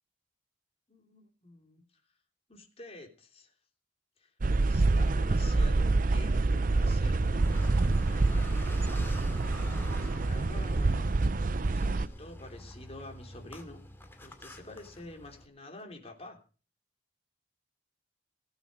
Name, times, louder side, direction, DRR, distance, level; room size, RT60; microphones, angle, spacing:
voice 1, 0.9-1.8 2.5-3.5 4.2-8.9 9.9-13.8 14.2-16.4, left 2 dB, 35° left, 3 dB, 3.2 m, -48 dB
sound 1, 4.4-12.1, right 3 dB, 50° right, 0.6 m, -27 dB
Car, 7.2-15.5, equal, 15° left, 2.4 m, -44 dB
18.5 x 8.9 x 5.4 m, 0.37 s
head